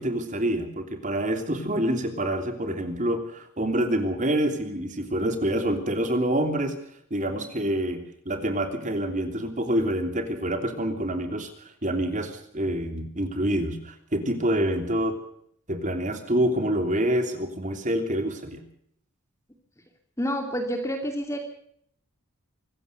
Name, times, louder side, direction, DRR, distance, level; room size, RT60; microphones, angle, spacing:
voice 1, 0.0-6.7 7.1-15.1 15.7-18.6, right 1 dB, 35° right, 6 dB, 3.2 m, -27 dB
voice 2, 20.2-21.4, equal, 15° left, 4 dB, 2.7 m, -28 dB
25.0 x 16.0 x 6.8 m, 0.66 s
head